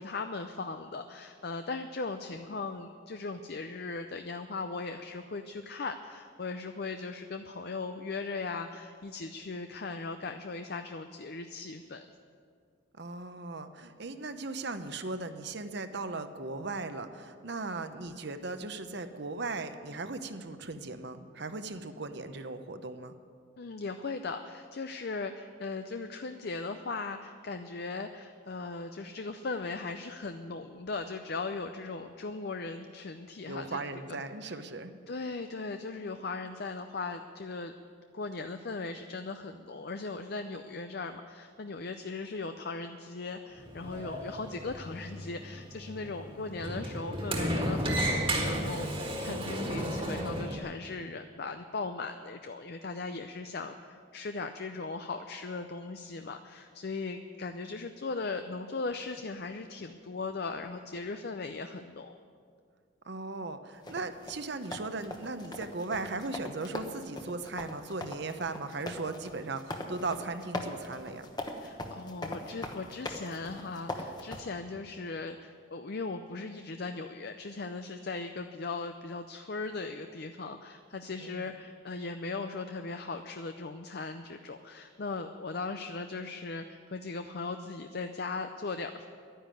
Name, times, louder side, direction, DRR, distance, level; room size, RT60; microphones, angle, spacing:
voice 1, 0.0-12.1 23.6-33.8 34.1-34.2 34.5-34.6 35.1-37.7 38.1-62.2 71.5-89.1, left 3 dB, 50° left, 7 dB, 0.5 m, -38 dB
voice 2, 13.0-23.1 33.5-34.9 63.0-71.3 81.2-81.5, right 3 dB, 55° right, 9 dB, 0.8 m, -38 dB
Sliding door, 43.6-50.6, right 1 dB, 25° right, 1.7 m, -33 dB
sound 1, 63.9-74.4, left 1 dB, 20° left, 1.0 m, -40 dB
11.5 x 10.0 x 9.1 m, 2.1 s
head